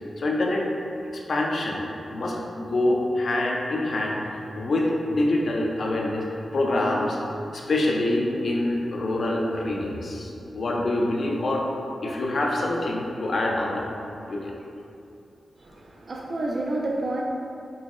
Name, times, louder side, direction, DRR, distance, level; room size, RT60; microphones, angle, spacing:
voice 1, 0.2-0.6 1.1-1.8 2.1-6.3 6.5-7.2 7.5-11.7 12.0-13.9 14.3-14.5, left 1 dB, 55° left, -1 dB, 0.4 m, -25 dB
voice 2, 15.6-17.2, right 2 dB, 45° right, -2 dB, 0.3 m, -29 dB
5.4 x 2.0 x 2.4 m, 2.7 s
wide cardioid pair, 145°, 0 cm